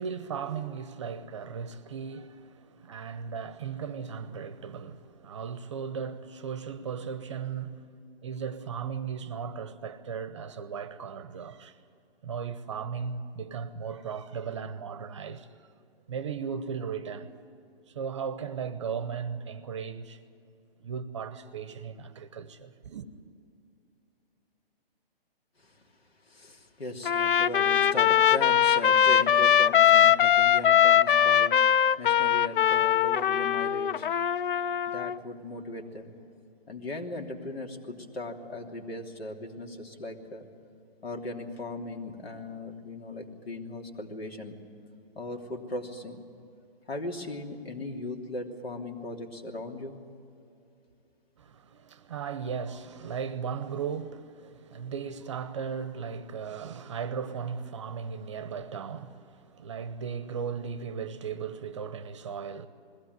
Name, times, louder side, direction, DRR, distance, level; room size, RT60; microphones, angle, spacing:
voice 1, 0.0-7.8 8.2-11.8 12.2-15.5 16.1-17.3 17.9-20.2 20.8-23.1 51.4-62.7, right 6 dB, 30° right, 0.8 m, -36 dB
voice 2, 26.2-34.1 34.9-36.1 36.7-40.5 41.0-44.6 45.1-46.2 46.9-50.0, left 2 dB, 85° left, 3.1 m, -38 dB
Trumpet, 27.0-35.2, left 9 dB, 60° left, 0.5 m, -21 dB
21.0 x 16.5 x 9.4 m
hypercardioid pair, 170°, 30 cm